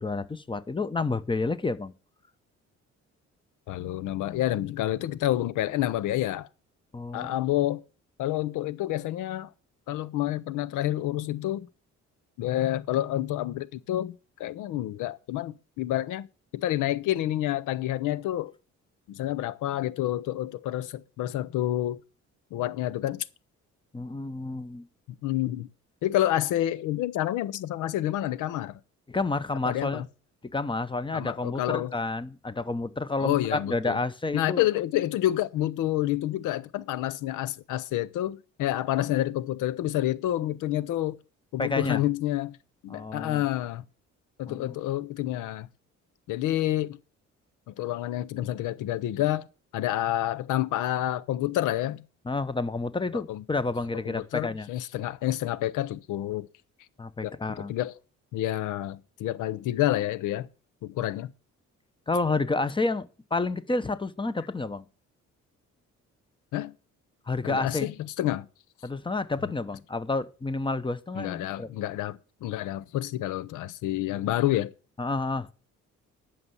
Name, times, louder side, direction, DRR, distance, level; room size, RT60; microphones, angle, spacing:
voice 1, 0.0-1.9 6.9-7.3 23.9-24.8 29.1-30.0 30.5-34.6 39.0-39.1 41.6-42.0 42.9-43.4 44.5-44.8 52.2-54.7 57.0-57.7 62.1-64.9 67.3-67.9 68.8-71.7 75.0-75.5, left 3 dB, 15° left, 0.9 m, -30 dB
voice 2, 3.7-6.5 7.1-7.8 8.2-9.5 9.9-11.7 12.4-16.3 16.5-18.5 19.1-22.0 22.5-23.3 25.2-25.7 26.0-28.8 29.7-30.0 31.1-31.9 33.2-34.0 34.3-41.2 41.5-42.6 42.8-43.8 44.4-45.7 46.3-47.0 47.7-49.4 49.7-52.0 53.1-53.4 54.1-56.5 57.2-58.0 58.3-60.5 60.8-61.3 66.5-66.7 67.4-68.5 71.1-74.7, left 13 dB, 85° left, 0.7 m, -28 dB
11.0 x 5.7 x 7.0 m
cardioid pair, 90°, 30 cm